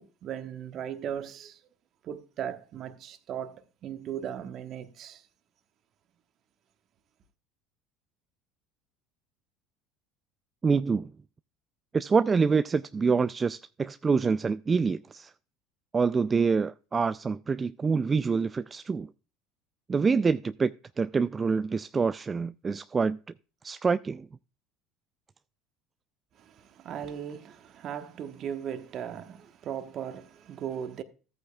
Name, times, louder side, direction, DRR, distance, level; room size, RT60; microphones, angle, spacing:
voice 1, 0.0-1.6 2.0-5.2 26.4-31.0, right 9 dB, 50° right, 1.1 m, -38 dB
voice 2, 10.6-11.1 11.9-15.3 15.9-19.1 19.9-20.7 21.0-23.2 23.6-24.3, right 5 dB, 25° right, 0.3 m, -26 dB
14.0 x 8.7 x 2.3 m
hypercardioid pair, 75°, 0 cm